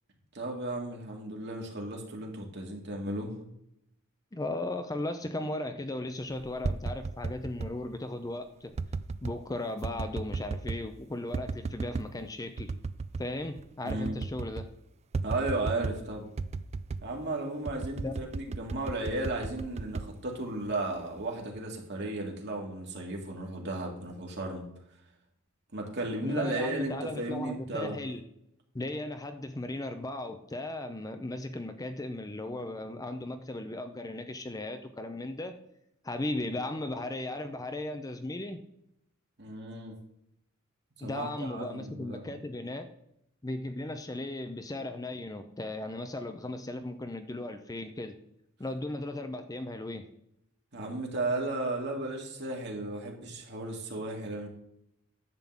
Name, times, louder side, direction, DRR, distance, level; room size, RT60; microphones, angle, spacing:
voice 1, 0.3-3.3 13.8-14.2 15.2-16.3 17.0-24.6 25.7-28.0 39.4-40.0 41.0-42.3 50.7-54.5, right 2 dB, 55° right, 0 dB, 2.1 m, -34 dB
voice 2, 4.3-8.7 9.2-12.7 13.2-14.7 17.9-18.1 26.2-28.2 28.7-35.5 36.0-38.6 41.0-42.9 43.4-48.2 48.6-50.1, left 2 dB, 15° left, 8 dB, 0.6 m, -36 dB
sound 1, 6.4-7.7 8.7-9.4 9.8-10.9 11.3-12.1 12.6-13.3 13.6-13.7 13.9-14.7 15.1-16.0 16.4-17.1 17.6-20.8 21.2-21.6, right 4 dB, 30° right, 0.3 m, -35 dB
10.5 x 3.8 x 7.4 m, 0.77 s
head